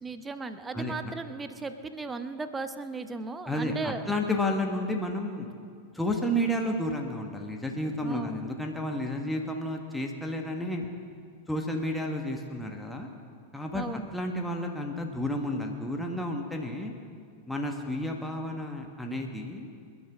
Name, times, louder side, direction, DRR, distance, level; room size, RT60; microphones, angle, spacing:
voice 1, 0.0-4.0 8.0-8.4 13.7-14.1, right 3 dB, 15° right, 10 dB, 0.9 m, -36 dB
voice 2, 3.5-5.5 5.9-10.9 11.5-13.1 13.5-13.8 14.1-16.9 17.5-19.7, left 1 dB, 5° left, 1 dB, 1.5 m, -31 dB
28.0 x 11.0 x 3.7 m, 2.2 s
figure-of-eight pair, 90°, 0 cm